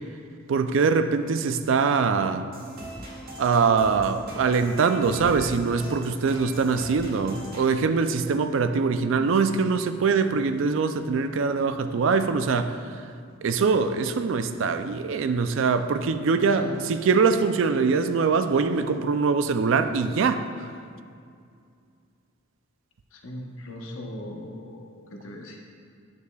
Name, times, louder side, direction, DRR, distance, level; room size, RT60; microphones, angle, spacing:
voice 1, 0.5-2.5 3.4-12.8 13.4-20.4, right 5 dB, 65° right, 10 dB, 0.4 m, -23 dB
sound 1, 2.5-7.7, right 1 dB, 45° right, 1.7 m, -40 dB
voice 2, 16.3-16.8 23.1-25.6, left 1 dB, 70° left, 1 dB, 0.9 m, -39 dB
9.4 x 6.7 x 2.3 m, 2.3 s
head